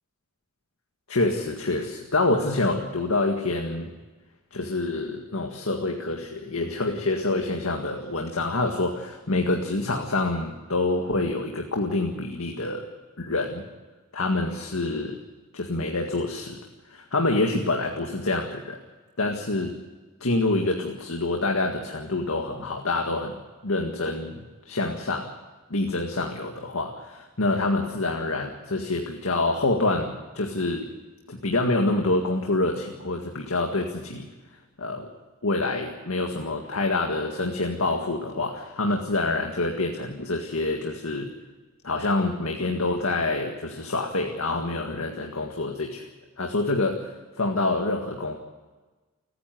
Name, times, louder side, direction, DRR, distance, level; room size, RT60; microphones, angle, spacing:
voice 1, 1.1-3.9 4.5-12.9 13.2-13.7 14.1-15.2 15.5-16.6 16.9-18.8 19.2-19.8 20.2-25.3 25.7-30.9 31.3-34.3 34.8-35.1 35.4-41.3 41.8-46.1 46.4-48.4, left 2 dB, 80° left, 2 dB, 1.9 m, -26 dB
29.5 x 10.0 x 9.3 m, 1.3 s
head